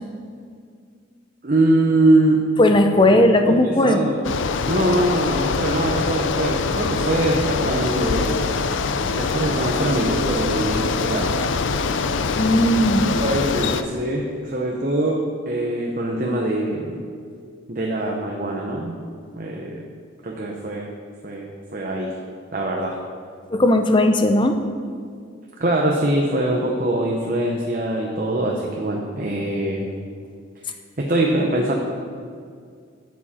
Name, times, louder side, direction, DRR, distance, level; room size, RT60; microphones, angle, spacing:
voice 1, 1.4-2.4 3.0-3.2 3.5-4.2 4.7-8.7 9.1-11.3 13.1-17.0 17.7-19.0 19.3-19.9 20.2-20.9 21.2-22.1 22.5-23.0 25.6-29.9 31.0-31.7, right 1 dB, 45° right, -1 dB, 0.9 m, -23 dB
voice 2, 2.6-4.0 12.4-13.1 23.5-24.6, left 1 dB, 25° left, 6 dB, 0.6 m, -16 dB
Bicycle, 4.2-13.8, left 4 dB, 70° left, 0.5 m, -24 dB
12.0 x 7.3 x 4.3 m, 2.1 s
head